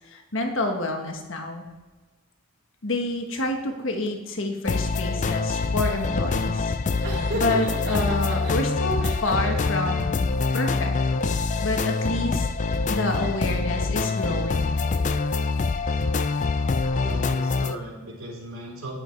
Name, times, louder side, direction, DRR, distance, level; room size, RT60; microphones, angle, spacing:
voice 1, 0.1-1.7 2.8-10.2 10.5-10.9 11.6-12.5 12.9-14.7, left 2 dB, 60° left, 3 dB, 1.4 m, -28 dB
sound 1, 4.6-17.7, left 3 dB, 35° left, 0.3 m, -25 dB
Laughter, 7.0-8.5 9.0-9.9, right 1 dB, 50° right, 2.3 m, -33 dB
voice 2, 17.0-18.9, right 1 dB, 75° right, -3 dB, 3.1 m, -37 dB
9.9 x 6.5 x 4.6 m, 1.3 s
head